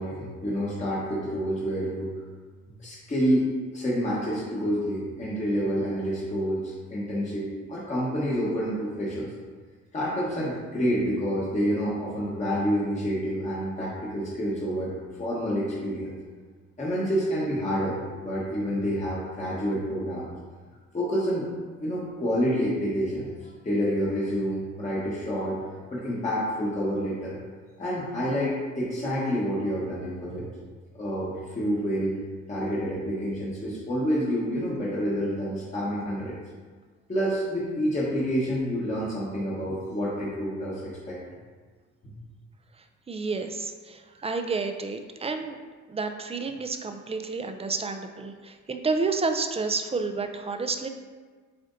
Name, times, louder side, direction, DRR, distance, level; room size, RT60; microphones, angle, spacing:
voice 1, 0.0-2.1 2.8-9.3 9.9-14.9 15.2-16.1 16.8-20.3 20.9-21.5 21.8-25.6 25.9-27.4 27.8-30.5 30.9-32.1 32.5-36.4 37.1-41.2, equal, 25° left, -7 dB, 1.0 m, -28 dB
voice 2, 43.1-45.6 45.9-50.9, right 4 dB, 20° right, 6 dB, 0.3 m, -30 dB
7.5 x 2.6 x 2.6 m, 1.5 s
cardioid pair, 90°, 30 cm